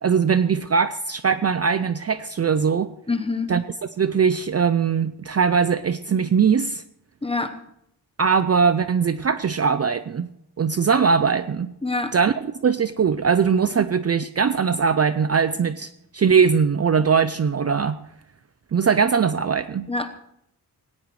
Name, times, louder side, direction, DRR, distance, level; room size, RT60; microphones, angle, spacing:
voice 1, 0.0-2.9 3.5-3.6 4.0-6.8 8.2-10.3 10.6-11.7 12.1-18.0 18.7-19.9, right 6 dB, 40° right, 12 dB, 0.4 m, -21 dB
voice 2, 3.1-3.5 7.2-7.5 11.8-12.1 19.9-20.1, left 3 dB, 15° left, 7 dB, 1.0 m, -25 dB
18.5 x 17.0 x 3.2 m, 0.77 s
wide cardioid pair, 120°, 39 cm